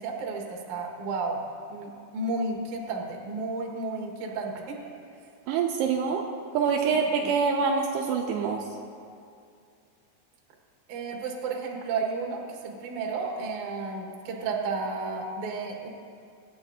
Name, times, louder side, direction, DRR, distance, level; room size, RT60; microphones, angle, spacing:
voice 1, 0.0-1.4 1.7-4.9 6.8-7.3 10.9-15.9, right 3 dB, 65° right, 0 dB, 2.0 m, -32 dB
voice 2, 5.5-6.2 6.5-8.6, right 5 dB, 90° right, 1 dB, 2.5 m, -25 dB
24.5 x 10.0 x 2.6 m, 2.4 s
omnidirectional pair, 5.5 m